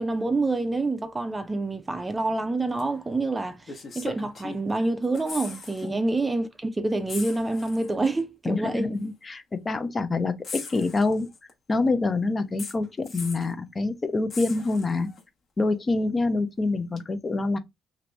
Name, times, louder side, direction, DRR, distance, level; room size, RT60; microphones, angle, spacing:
voice 1, 0.0-8.9, right 2 dB, 20° right, 0.5 m, -27 dB
sound 1, 2.8-2.9 3.7-4.8 5.0-5.9 6.2-6.3 7.1-7.9 9.0-9.1 10.4-11.5 12.6-13.5 14.3-15.2 17.0-17.1, left 4 dB, 50° left, 1.1 m, -39 dB
voice 2, 8.5-11.3 11.7-15.1 15.6-17.6, left 3 dB, 30° left, 0.6 m, -26 dB
2.8 x 2.6 x 3.2 m
supercardioid pair, 80°, 0 cm